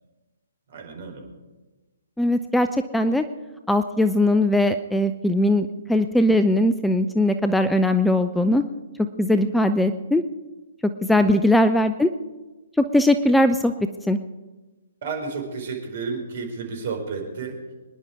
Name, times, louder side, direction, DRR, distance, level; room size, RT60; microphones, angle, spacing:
voice 1, 0.7-1.3 11.1-11.4 15.0-17.6, right 4 dB, 50° right, 3 dB, 4.7 m, -32 dB
voice 2, 2.2-2.7 2.9-3.2 3.7-8.6 9.2-10.2 11.1-12.1 12.9-13.7 14.1-14.2, left 1 dB, 5° left, 9 dB, 0.6 m, -20 dB
25.0 x 10.5 x 4.8 m, 1.2 s
figure-of-eight pair, 130°, 0 cm